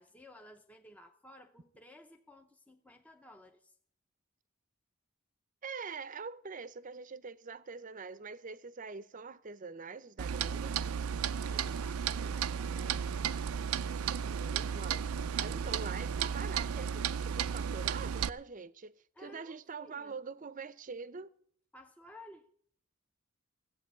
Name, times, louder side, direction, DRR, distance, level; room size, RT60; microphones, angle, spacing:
voice 1, 0.0-3.8 11.4-13.1 19.2-20.2 21.7-22.5, left 1 dB, 5° left, 0.6 m, -55 dB
voice 2, 5.6-10.8 14.3-15.1 15.3-18.9 19.2-21.3, right 5 dB, 40° right, 0.6 m, -44 dB
Clock, 10.2-18.3, right 7 dB, 85° right, 0.5 m, -34 dB
14.5 x 8.2 x 8.2 m
head